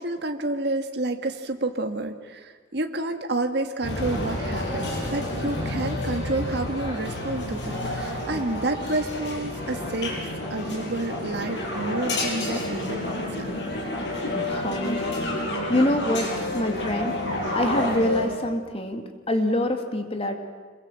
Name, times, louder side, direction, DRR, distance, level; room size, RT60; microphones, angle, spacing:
voice 1, 0.0-10.2 10.5-13.5, right 2 dB, 60° right, 5 dB, 1.6 m, -29 dB
sound 1, 3.8-18.3, left 1 dB, 65° left, 6.5 m, -29 dB
voice 2, 14.3-20.4, left 1 dB, 30° left, 6 dB, 2.1 m, -26 dB
26.5 x 22.5 x 7.6 m, 1.5 s
head